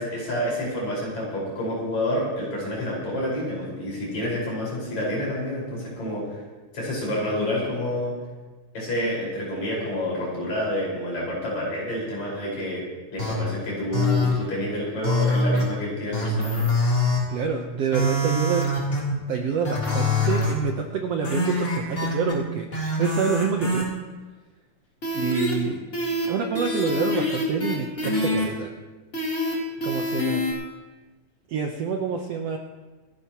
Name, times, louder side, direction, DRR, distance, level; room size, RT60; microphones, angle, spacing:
voice 1, 0.0-6.4 6.7-8.2 8.7-12.8 13.1-16.7 25.5-25.7, left 1 dB, 55° left, -4 dB, 6.4 m, -28 dB
sound 1, 13.2-13.3 13.9-14.3 15.0-15.6 16.1-17.2 17.9-19.1 19.6-20.5 21.2-22.3 22.7-23.8 25.0-25.5 25.9-26.3 26.6-28.4 29.1-29.5 29.8-30.5, left 1 dB, 20° left, 3.3 m, -24 dB
voice 2, 17.3-18.7 19.3-23.8 25.1-25.8 26.3-28.7 29.8-30.4 31.5-32.6, right 6 dB, 70° right, 2 dB, 1.6 m, -27 dB
27.5 x 11.5 x 3.0 m, 1.3 s
omnidirectional pair, 3.7 m